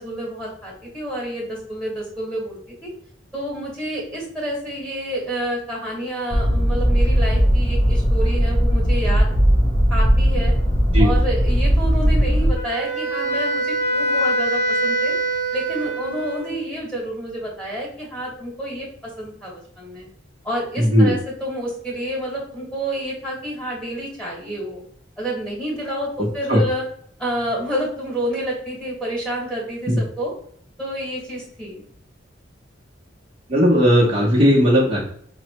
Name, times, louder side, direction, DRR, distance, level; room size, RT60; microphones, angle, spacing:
voice 1, 0.0-2.9 3.3-9.3 9.9-10.5 11.0-15.1 15.5-18.9 19.2-20.1 20.4-24.8 25.2-26.8 27.2-30.3 30.8-31.8, right 1 dB, 5° left, -5 dB, 1.4 m, -29 dB
sound 1, 6.3-12.6, equal, 20° left, 0.6 m, -18 dB
Wind instrument woodwind instrument, 12.5-16.6, right 1 dB, 65° left, 0.9 m, -24 dB
voice 2, 20.8-21.1 26.5-26.6 29.9-30.0 33.5-35.0, equal, 30° right, -6 dB, 0.8 m, -16 dB
5.2 x 2.1 x 2.9 m, 0.62 s
head